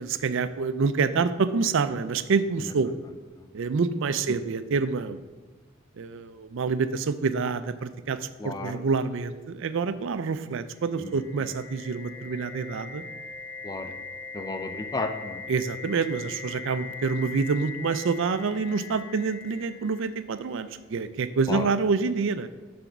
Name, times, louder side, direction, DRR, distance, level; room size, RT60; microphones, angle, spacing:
voice 1, 0.0-3.0 3.5-5.2 6.0-13.0 13.8-13.9 15.5-22.5, right 4 dB, 65° right, 12 dB, 0.4 m, -27 dB
voice 2, 8.4-8.8 11.0-11.1 13.6-13.9 14.3-15.4 21.5-21.7, left 3 dB, 20° left, 6 dB, 0.5 m, -33 dB
sound 1, 10.7-20.6, left 4 dB, 5° right, 1.8 m, -41 dB
7.8 x 3.4 x 6.0 m, 1.3 s
head